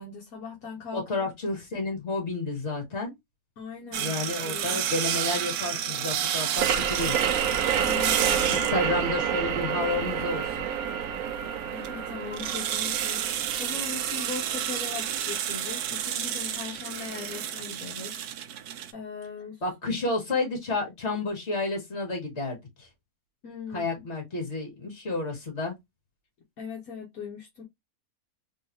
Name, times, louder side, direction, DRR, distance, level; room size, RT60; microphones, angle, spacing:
voice 1, 0.0-1.3 3.6-4.1 4.4-4.8 7.8-8.9 9.5-9.6 10.2-10.3 11.7-18.1 18.4-19.6 19.9-20.0 23.4-23.9 26.6-27.6, left 5 dB, 70° left, 1.5 m, -40 dB
voice 2, 0.9-3.1 3.9-7.1 8.7-10.4 19.6-22.9 23.7-25.7, left 3 dB, 45° left, 2.0 m, -31 dB
sound 1, 3.9-18.9, right 10 dB, 85° right, 1.1 m, -31 dB
sound 2, 6.6-15.9, right 8 dB, 65° right, 1.0 m, -29 dB
3.7 x 3.6 x 2.8 m
omnidirectional pair, 1.6 m